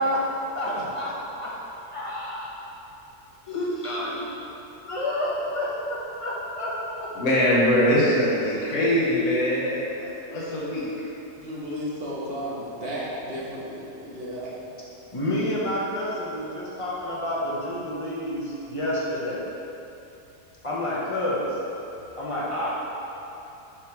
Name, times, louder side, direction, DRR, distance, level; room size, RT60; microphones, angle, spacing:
voice 1, 0.0-1.6 1.9-2.6 3.5-4.2 4.8-7.5 7.8-7.9 15.1-19.4 20.6-21.6 22.2-22.8, left 1 dB, 25° left, -6 dB, 0.8 m, -29 dB
voice 2, 7.1-10.9, equal, 60° left, -7 dB, 1.5 m, -22 dB
voice 3, 11.3-14.7, equal, 40° right, -6 dB, 1.2 m, -33 dB
7.2 x 3.2 x 4.6 m, 3.0 s
omnidirectional pair, 1.7 m